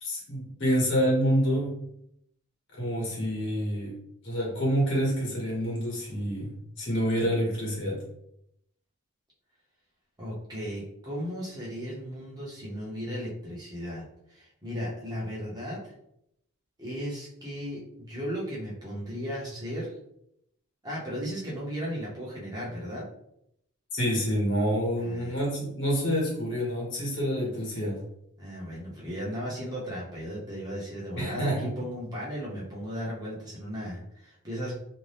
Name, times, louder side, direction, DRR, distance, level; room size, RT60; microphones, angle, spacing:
voice 1, 0.0-1.8 2.7-3.9 4.2-8.0 23.9-28.0 31.2-31.7, equal, 55° left, -4 dB, 1.1 m, -27 dB
voice 2, 10.2-15.9 16.8-19.9 20.8-23.0 25.0-25.3 28.4-34.7, equal, 15° right, -6 dB, 0.7 m, -36 dB
2.6 x 2.2 x 3.2 m, 0.77 s
head